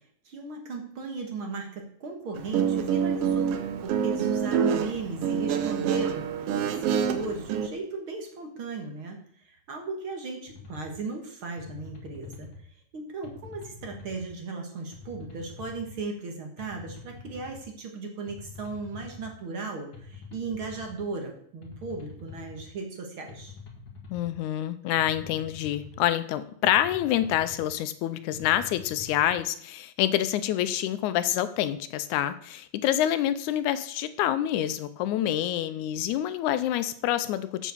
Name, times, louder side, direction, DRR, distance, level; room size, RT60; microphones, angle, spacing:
voice 1, 0.3-12.7 12.9-23.6, right 3 dB, 50° right, 3 dB, 2.0 m, -37 dB
Guitar, 2.4-7.7, right 7 dB, 70° right, 1.4 m, -26 dB
sound 1, 10.5-10.9 11.6-12.6 13.2-14.3 14.9-15.9 16.6-17.6 18.3-19.3 19.9-21.0 21.6-22.6 23.3-24.3 25.0-26.0 26.6-27.7 28.3-29.3, left 4 dB, 45° left, 2.1 m, -45 dB
voice 2, 24.1-37.7, left 12 dB, 85° left, 13 dB, 2.0 m, -27 dB
7.3 x 6.8 x 7.0 m, 0.64 s
omnidirectional pair, 3.5 m